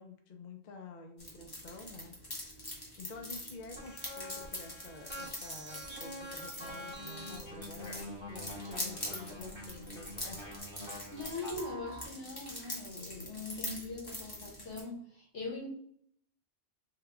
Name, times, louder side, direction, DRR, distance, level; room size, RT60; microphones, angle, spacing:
voice 1, 0.0-8.0 8.3-10.5, left 3 dB, 55° left, 4 dB, 0.5 m, -49 dB
sound 1, 1.2-14.8, left 1 dB, 20° left, 0.8 m, -44 dB
sound 2, 3.7-12.0, equal, 25° right, 0.9 m, -47 dB
sound 3, 6.6-12.5 13.0-13.2 13.5-13.7, left 3 dB, 80° right, 1.0 m, -51 dB
voice 2, 11.1-15.7, left 3 dB, 75° left, -3 dB, 1.5 m, -41 dB
3.5 x 2.2 x 3.5 m, 0.64 s
omnidirectional pair, 1.2 m